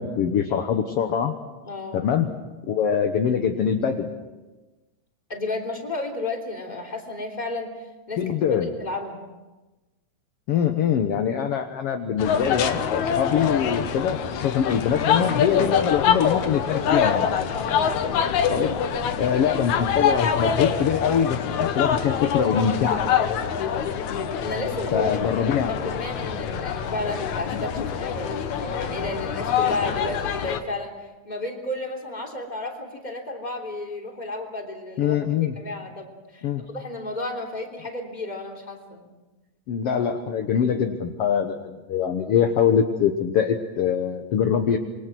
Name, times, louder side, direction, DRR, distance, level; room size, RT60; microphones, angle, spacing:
voice 1, 0.0-1.4 1.9-2.3 2.7-4.1 8.2-8.7 10.5-17.4 18.5-18.7 19.2-23.0 24.9-25.8 35.0-35.5 36.4-36.6 39.7-44.8, left 8 dB, 60° left, 5 dB, 2.0 m, -23 dB
voice 2, 1.6-2.0 5.3-7.7 8.1-9.2 17.8-18.1 24.4-25.1 25.8-35.1 35.5-36.5 36.7-39.2, left 2 dB, 15° left, 2 dB, 3.3 m, -32 dB
sound 1, 12.2-30.6, left 7 dB, 80° left, 2.7 m, -25 dB
27.0 x 23.5 x 6.2 m, 1.2 s
omnidirectional pair, 3.3 m